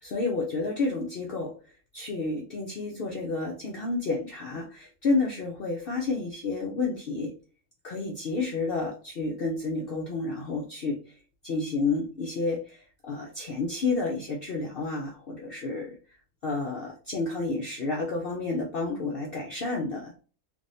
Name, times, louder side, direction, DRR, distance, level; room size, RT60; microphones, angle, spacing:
voice 1, 0.0-1.5 1.9-7.3 7.8-11.1 11.4-16.0 16.4-20.1, left 3 dB, 55° left, -1 dB, 0.7 m, -30 dB
3.3 x 3.3 x 2.6 m, 0.38 s
omnidirectional pair, 1.5 m